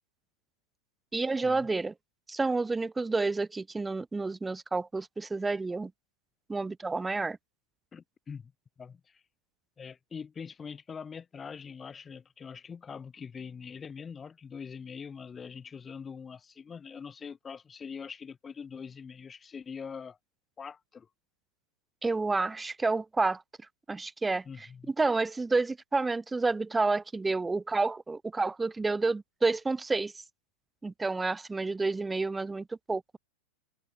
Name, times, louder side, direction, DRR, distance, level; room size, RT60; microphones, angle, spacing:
voice 1, 1.1-1.9 2.3-5.9 6.5-7.4 22.0-23.4 23.9-24.4 24.9-30.2 30.8-33.2, right 3 dB, 10° right, 0.4 m, -29 dB
voice 2, 7.9-8.5 8.8-9.2 9.8-20.2 20.6-21.1 24.4-24.9, left 6 dB, 20° left, 3.0 m, -43 dB
figure-of-eight pair, 90°, 0 cm